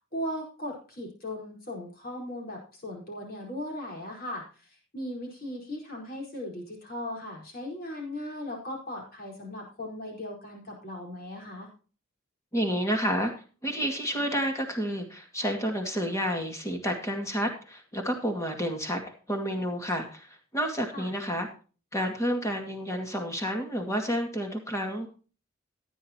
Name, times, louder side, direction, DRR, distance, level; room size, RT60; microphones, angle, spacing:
voice 1, 0.1-4.4 4.9-11.7 20.9-21.1, left 1 dB, 45° left, -1 dB, 4.6 m, -37 dB
voice 2, 12.5-13.3 13.6-21.5 21.9-25.1, equal, 15° left, 3 dB, 2.1 m, -30 dB
15.5 x 10.0 x 2.9 m, 0.37 s
head